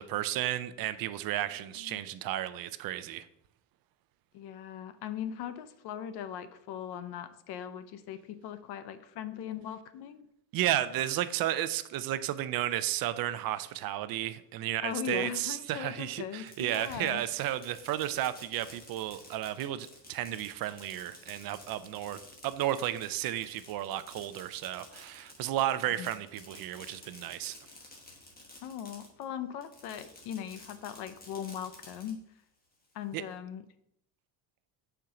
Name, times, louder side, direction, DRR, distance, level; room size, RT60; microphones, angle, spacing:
voice 1, 0.0-3.3 10.5-27.6 33.1-33.2, right 13 dB, 60° right, 0.5 m, -33 dB
voice 2, 4.3-10.3 14.8-17.2 26.0-26.1 28.6-32.2 32.9-33.6, left 9 dB, 75° left, 0.7 m, -39 dB
Fireworks, 16.3-29.2 29.6-32.1, left 2 dB, 20° left, 1.3 m, -52 dB
6.7 x 4.5 x 3.8 m
cardioid pair, 140°, 40 cm